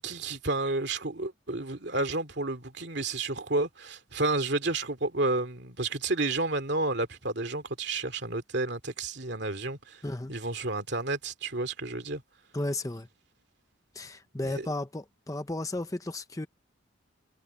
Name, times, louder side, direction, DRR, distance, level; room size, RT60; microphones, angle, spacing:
voice 1, 0.0-10.0 10.3-12.2 14.4-14.7, right 2 dB, 55° right, 2.6 m, -31 dB
voice 2, 10.0-10.3 12.5-13.1 13.9-16.5, left 2 dB, 15° left, 0.7 m, -34 dB
head